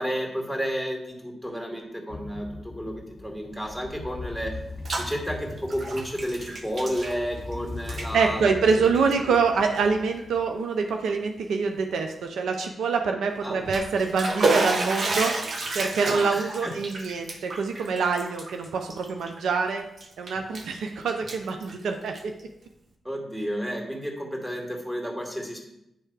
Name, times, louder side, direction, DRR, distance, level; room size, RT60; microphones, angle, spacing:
voice 1, 0.0-4.6 5.0-8.6 8.8-9.4 13.4-13.8 16.0-16.7 17.7-17.8 23.0-25.6, equal, 10° right, -1 dB, 2.1 m, -32 dB
sound 1, 2.1-10.6, left 3 dB, 45° left, 0.4 m, -40 dB
Bathtub (filling or washing), 4.5-5.1 5.4-7.5 7.8-8.1 8.8-9.0 9.6-9.7 10.2-10.3 13.4-19.6 20.0-20.8 21.1-22.4, right 2 dB, 55° right, 0.9 m, -30 dB
voice 2, 8.1-15.4 15.7-19.9 20.2-22.4, right 5 dB, 80° right, 5 dB, 0.4 m, -25 dB
8.5 x 3.3 x 4.7 m, 0.86 s
supercardioid pair, 40°, 0 cm